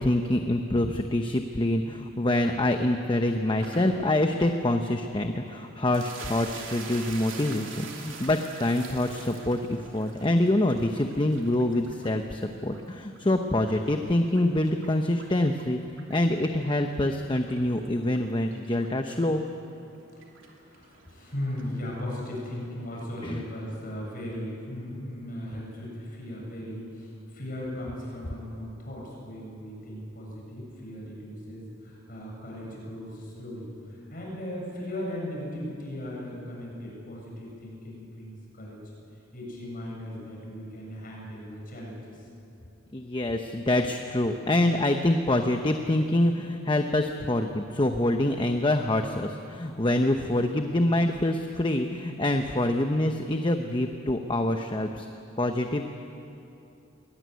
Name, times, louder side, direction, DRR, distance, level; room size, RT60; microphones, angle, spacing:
voice 1, 0.0-15.8 16.1-19.4 23.2-23.4 42.9-55.1 55.4-55.9, left 1 dB, 25° left, 5 dB, 0.9 m, -26 dB
sound 1, 3.6-21.8, right 4 dB, 80° right, 3.0 m, -47 dB
voice 2, 20.2-38.8 39.3-42.3, left 1 dB, 45° left, -3 dB, 7.4 m, -37 dB
22.0 x 19.0 x 9.4 m, 2.8 s
head